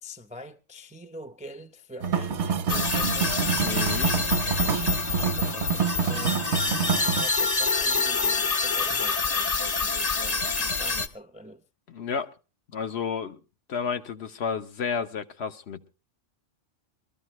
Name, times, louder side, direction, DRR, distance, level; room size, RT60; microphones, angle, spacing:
voice 1, 0.0-3.5 5.2-6.4 7.0-11.6, equal, 10° right, 0.4 m, -44 dB
sound 1, 2.0-7.2, right 6 dB, 70° right, 1.1 m, -27 dB
sound 2, 2.7-11.1, left 4 dB, 35° left, 0.8 m, -27 dB
voice 2, 3.6-4.1 11.9-12.3 12.7-13.4 13.7-15.9, left 6 dB, 60° left, 1.1 m, -31 dB
22.5 x 13.5 x 3.1 m
omnidirectional pair, 1.3 m